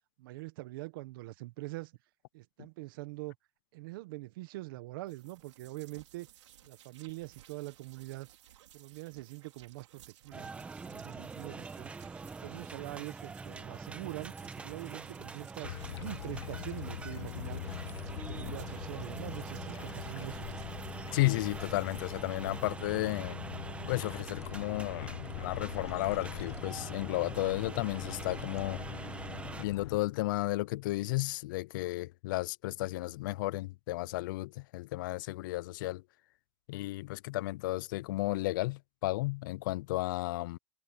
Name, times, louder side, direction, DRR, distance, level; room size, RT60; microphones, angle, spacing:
voice 1, 0.2-1.9 2.3-3.3 3.7-6.3 6.6-8.3 8.7-10.5 10.8-11.9 12.4-14.3 14.6-17.6 18.1-20.5, right 20 dB, 50° right, 1.3 m, -43 dB
sound 1, 5.1-22.8, right 12 dB, 85° right, 4.4 m, -59 dB
sound 2, 10.3-29.7, right 4 dB, 10° right, 1.0 m, -44 dB
sound 3, 15.6-30.0, left 12 dB, 70° left, 1.0 m, -43 dB
voice 2, 21.1-23.4 23.9-28.8 29.6-36.0 36.7-40.6, left 19 dB, 45° left, 0.4 m, -33 dB
supercardioid pair, 165°, 15 cm